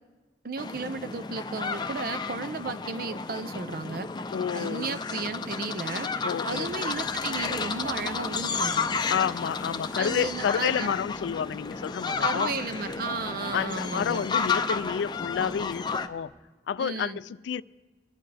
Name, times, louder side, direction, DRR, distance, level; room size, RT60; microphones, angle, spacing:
voice 1, 0.4-4.1 4.5-6.1 6.4-8.9 10.0-10.9 12.2-14.3 16.8-17.2, right 4 dB, 55° right, 12 dB, 0.6 m, -34 dB
sound 1, 0.6-16.1, left 5 dB, 25° left, 0.5 m, -32 dB
voice 2, 4.3-5.0 6.2-6.7 9.1-12.5 13.5-16.3 16.7-17.6, left 7 dB, 90° left, 19 dB, 0.3 m, -30 dB
sound 2, 6.4-16.3, equal, 70° right, 5.2 m, -54 dB
23.5 x 11.0 x 3.4 m, 1.3 s
head